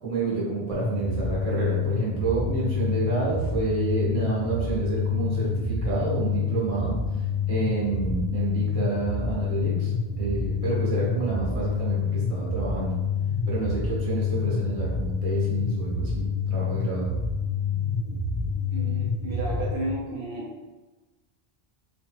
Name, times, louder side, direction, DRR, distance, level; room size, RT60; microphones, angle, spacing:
voice 1, 0.0-7.0 7.5-9.9 10.2-13.0 13.5-17.1, right 3 dB, 35° right, -7 dB, 1.0 m, -29 dB
sound 1, 0.7-19.7, left 5 dB, 55° left, 0.6 m, -27 dB
voice 2, 18.7-20.5, right 1 dB, 80° right, -2 dB, 0.8 m, -32 dB
3.1 x 2.3 x 2.7 m, 1.2 s
omnidirectional pair, 1.1 m